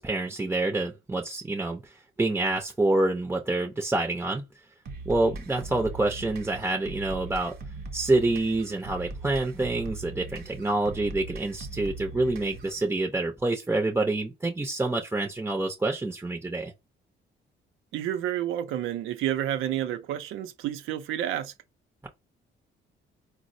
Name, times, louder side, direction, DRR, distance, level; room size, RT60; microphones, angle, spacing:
voice 1, 0.0-4.4 5.1-7.6 7.9-16.7, right 2 dB, 10° right, 0.5 m, -27 dB
sound 1, 4.9-12.8, right 3 dB, 50° right, 0.8 m, -40 dB
voice 2, 17.9-21.5, right 11 dB, 90° right, 0.5 m, -30 dB
4.0 x 2.0 x 2.6 m
cardioid pair, 90°, 20 cm